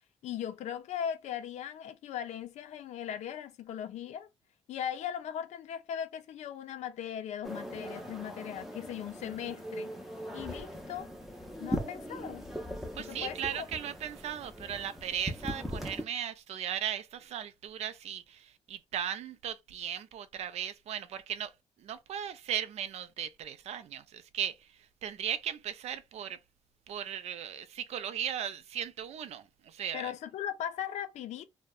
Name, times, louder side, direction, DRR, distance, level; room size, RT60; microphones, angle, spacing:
voice 1, 0.2-4.3 4.7-9.9 10.3-11.1 11.6-12.4 13.0-13.7 29.9-31.5, left 9 dB, 75° left, 0.4 m, -38 dB
sound 1, 7.4-16.0, equal, ahead, 0.5 m, -40 dB
voice 2, 12.9-21.5 21.8-26.4 26.9-30.1, right 9 dB, 65° right, 0.4 m, -37 dB
2.6 x 2.1 x 2.2 m
cardioid pair, 130°, 12 cm